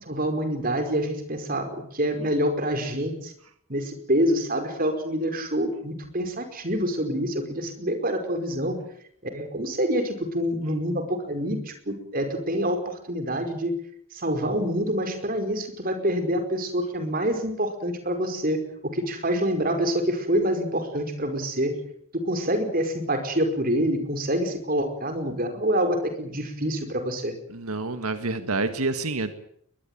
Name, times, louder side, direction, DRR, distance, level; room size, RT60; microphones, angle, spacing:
voice 1, 0.0-3.3 3.7-8.8 9.2-13.8 14.1-21.8 22.1-27.3, equal, 40° right, 6 dB, 5.1 m, -26 dB
voice 2, 27.5-29.3, right 3 dB, 85° right, 8 dB, 1.8 m, -28 dB
22.0 x 21.5 x 9.1 m, 0.66 s
head